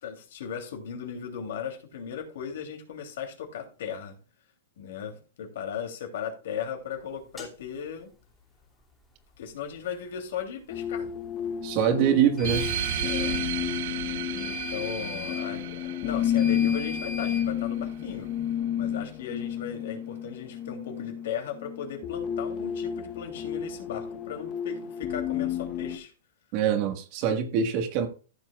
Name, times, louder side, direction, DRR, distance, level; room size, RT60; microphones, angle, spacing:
voice 1, 0.0-4.2 4.8-8.1 9.4-11.1 11.7-12.3 13.0-13.4 14.2-18.3 18.8-26.1, left 7 dB, 70° left, 3.0 m, -37 dB
sound 1, 7.4-7.5 12.4-13.5 14.4-15.5 16.4-17.5, equal, 5° left, 2.7 m, -38 dB
sound 2, 10.7-26.0, left 9 dB, 35° left, 1.0 m, -31 dB
voice 2, 11.6-12.7 26.5-28.1, right 8 dB, 40° right, 1.6 m, -24 dB
sound 3, 12.4-17.4, right 11 dB, 60° right, 0.6 m, -34 dB
15.0 x 7.3 x 2.4 m
hypercardioid pair, 150°, 0 cm